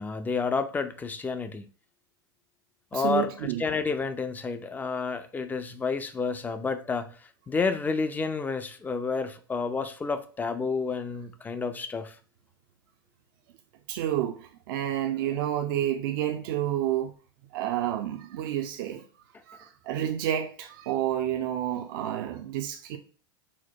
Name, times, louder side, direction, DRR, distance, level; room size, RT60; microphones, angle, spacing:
voice 1, 0.0-1.7 2.9-3.3 3.6-7.1 7.5-12.1, left 4 dB, 15° left, 0.4 m, -30 dB
voice 2, 2.9-3.6 13.9-17.1 17.5-19.0 19.5-23.0, right 11 dB, 65° right, 0.5 m, -29 dB
4.3 x 2.1 x 4.5 m
hypercardioid pair, 105°, 12 cm